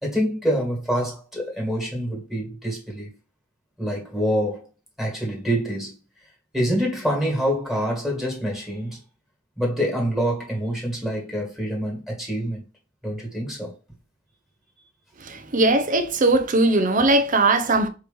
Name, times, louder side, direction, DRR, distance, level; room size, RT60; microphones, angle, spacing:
voice 1, 0.0-3.1 3.8-4.7 5.0-6.0 6.5-9.0 9.6-12.6 13.0-13.7, equal, ahead, 1.8 m, -26 dB
voice 2, 15.2-17.9, right 2 dB, 40° right, 0.6 m, -19 dB
4.7 x 3.1 x 3.4 m
head